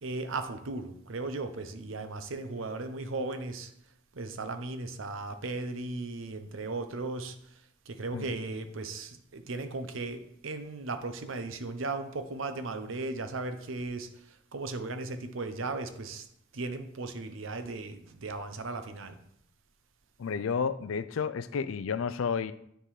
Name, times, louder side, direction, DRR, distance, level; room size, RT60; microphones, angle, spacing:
voice 1, 0.0-3.7 4.1-7.4 7.9-14.1 14.5-16.3 16.5-19.2, right 3 dB, 75° right, 0.7 m, -36 dB
voice 2, 20.2-22.5, left 6 dB, 80° left, 0.4 m, -31 dB
9.8 x 3.7 x 4.9 m
head